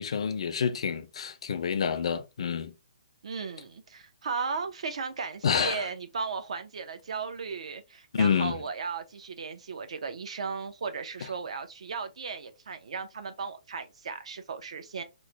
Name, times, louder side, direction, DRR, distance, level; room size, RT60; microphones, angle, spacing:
voice 1, 0.0-2.7 5.4-5.9 8.1-8.6, left 6 dB, 50° left, 0.4 m, -28 dB
voice 2, 3.2-15.0, right 5 dB, 55° right, 0.6 m, -36 dB
3.1 x 2.1 x 3.8 m
hypercardioid pair, 175°, 4 cm